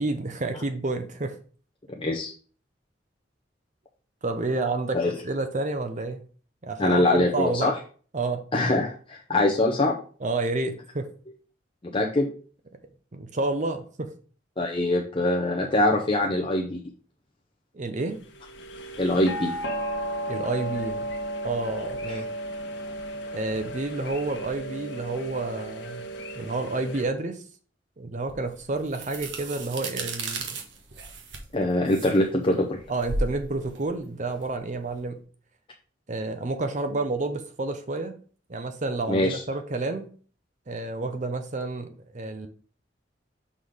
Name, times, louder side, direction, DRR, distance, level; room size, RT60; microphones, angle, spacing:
voice 1, 0.0-1.4 4.2-6.2 6.6-7.7 8.1-8.4 10.2-11.1 13.1-14.1 17.7-18.2 20.3-21.0 21.4-22.3 23.3-26.1 26.3-27.4 28.0-30.6 32.9-35.2 36.1-38.2 38.5-40.1 40.7-42.5, right 3 dB, 40° right, 7 dB, 0.7 m, -30 dB
voice 2, 1.9-2.3 4.9-5.1 6.8-7.8 8.5-10.0 11.8-12.3 14.6-16.8 19.0-19.5 22.1-22.2 31.5-32.8 39.1-39.4, left 1 dB, 30° left, 0 dB, 0.7 m, -23 dB
sound 1, 18.2-27.0, right 1 dB, 75° left, 1.1 m, -34 dB
sound 2, 28.3-35.0, right 2 dB, 80° right, 1.2 m, -35 dB
6.2 x 3.8 x 4.9 m, 0.42 s
head